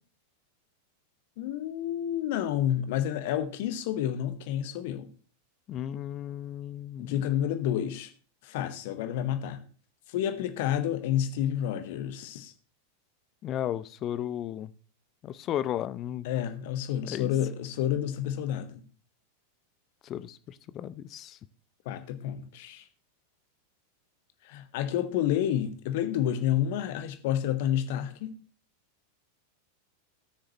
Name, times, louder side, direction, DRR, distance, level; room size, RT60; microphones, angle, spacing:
voice 1, 1.4-5.1 7.0-8.1 8.4-9.6 10.1-12.5 16.2-18.8 21.8-22.8 24.4-28.4, left 10 dB, 50° left, 1.2 m, -29 dB
voice 2, 5.7-7.2 13.4-14.7 15.2-16.3 17.1-17.3 20.0-21.4, left 11 dB, 30° left, 0.6 m, -34 dB
18.5 x 6.5 x 3.0 m
figure-of-eight pair, 90°, 0 cm